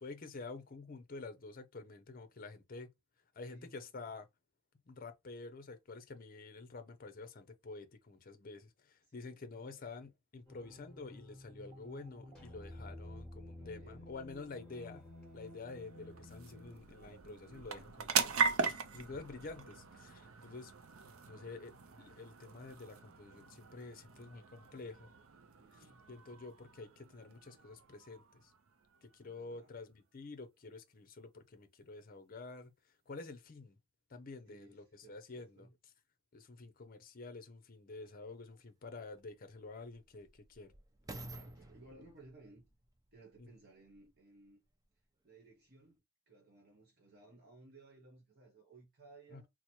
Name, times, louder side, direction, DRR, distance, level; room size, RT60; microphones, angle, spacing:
voice 1, 0.0-2.9 3.3-4.3 4.9-20.7 21.3-25.1 25.7-28.5 29.0-32.7 33.1-33.8 34.1-35.7 36.3-40.7 43.4-43.5 49.3-49.4, left 3 dB, 45° left, 0.6 m, -49 dB
voice 2, 3.4-4.1 9.1-9.9 13.5-14.2 14.7-14.9 19.2-19.4 25.6-26.1 29.3-29.7 34.4-35.7 41.2-42.7 43.1-44.6 45.2-49.5, right 2 dB, 50° right, 1.0 m, -60 dB
sound 1, 10.5-16.8, left 1 dB, 5° left, 1.4 m, -52 dB
sound 2, 14.7-29.6, right 5 dB, 80° right, 0.5 m, -41 dB
sound 3, 38.1-38.2 38.9-44.2 44.8-44.9, right 1 dB, 15° right, 0.4 m, -53 dB
3.0 x 2.0 x 4.1 m
head